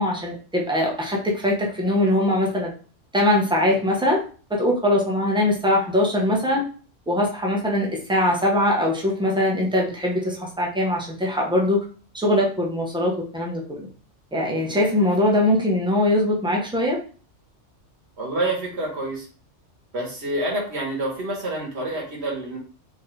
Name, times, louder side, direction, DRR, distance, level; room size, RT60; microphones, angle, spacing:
voice 1, 0.0-2.7 3.1-4.2 4.5-6.6 7.1-11.8 12.1-13.9 14.3-17.0, left 1 dB, 5° right, -2 dB, 0.9 m, -22 dB
voice 2, 18.2-19.3 19.9-22.6, right 1 dB, 60° right, -1 dB, 1.7 m, -27 dB
4.1 x 3.1 x 3.3 m, 0.39 s
omnidirectional pair, 1.3 m